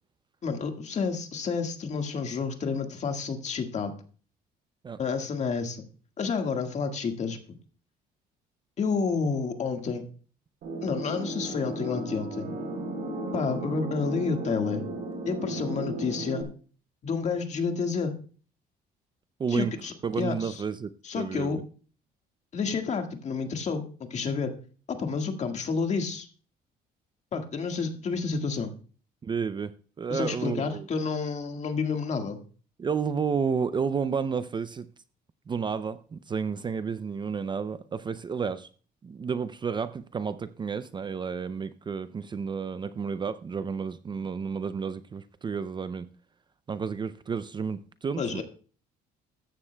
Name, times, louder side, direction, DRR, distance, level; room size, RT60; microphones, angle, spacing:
voice 1, 0.4-3.9 5.0-5.8 6.2-7.4 8.8-10.1 10.8-12.5 13.3-14.8 15.3-16.5 17.0-18.2 19.5-20.6 21.0-21.6 22.5-24.5 24.9-26.3 27.3-28.7 30.1-32.4 48.2-48.4, left 5 dB, 45° left, 1.7 m, -30 dB
sound 1, 10.6-16.4, right 2 dB, 65° right, 3.5 m, -35 dB
voice 2, 19.4-19.7 20.0-20.9 21.2-21.6 29.2-29.7 30.0-30.9 32.8-34.9 35.5-38.7 39.0-46.1 46.7-48.4, right 6 dB, 25° right, 0.5 m, -31 dB
14.5 x 11.0 x 2.2 m
cardioid pair, 110°, 17 cm